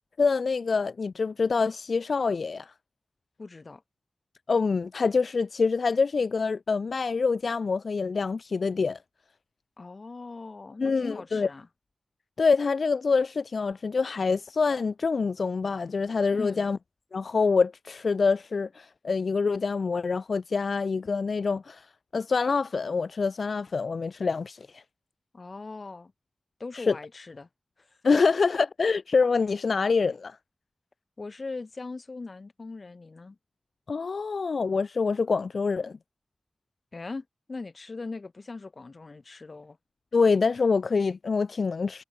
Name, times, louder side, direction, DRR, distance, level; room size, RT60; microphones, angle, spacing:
voice 1, 0.2-2.7 4.5-9.0 10.8-11.5 12.4-16.8 17.1-21.9 22.1-24.8 26.7-27.0 28.0-30.4 33.9-35.9 40.1-42.0, left 4 dB, 75° left, 1.9 m, -26 dB
voice 2, 3.4-3.8 9.8-11.7 16.3-16.7 25.3-26.1 26.6-27.5 27.8-28.2 31.2-33.4 36.9-39.8, left 3 dB, 50° left, 4.9 m, -40 dB
wide cardioid pair, 95°, 0 cm